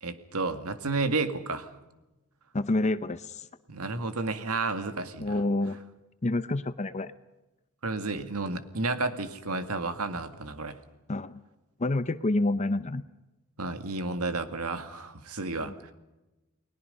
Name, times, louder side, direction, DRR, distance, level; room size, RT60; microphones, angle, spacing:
voice 1, 0.0-1.7 3.7-5.3 7.8-10.8 13.6-15.7, right 3 dB, 90° right, 9 dB, 2.0 m, -31 dB
voice 2, 2.5-3.5 5.2-5.8 6.2-7.1 11.1-11.4 11.8-13.0 15.7-15.8, left 2 dB, 30° left, 13 dB, 0.7 m, -28 dB
30.0 x 20.5 x 5.4 m, 1.0 s
head